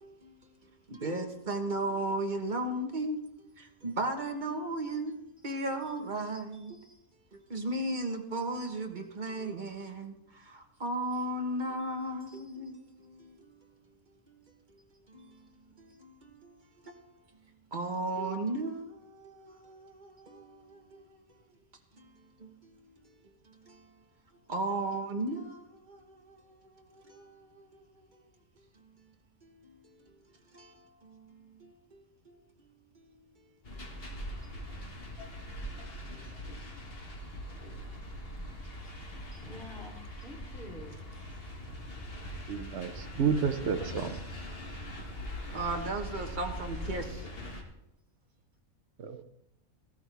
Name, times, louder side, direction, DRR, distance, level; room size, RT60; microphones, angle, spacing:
voice 1, 0.0-3.2 3.6-6.8 7.3-13.6 14.3-14.4 15.1-16.6 16.8-17.0 17.7-21.2 22.0-22.8 23.5-23.8 24.5-27.7 28.1-28.2 29.4-30.0 30.5-32.4 34.1-34.6 36.1-36.3 37.6-37.8 45.5-47.3, right 2 dB, 35° right, 1.4 m, -36 dB
sound 1, 33.6-47.6, equal, 45° left, 1.9 m, -42 dB
voice 2, 39.4-41.0 43.0-43.7, left 1 dB, ahead, 3.2 m, -49 dB
voice 3, 42.5-44.2 49.0-49.2, right 6 dB, 55° right, 1.1 m, -31 dB
15.0 x 13.5 x 3.4 m
omnidirectional pair, 1.4 m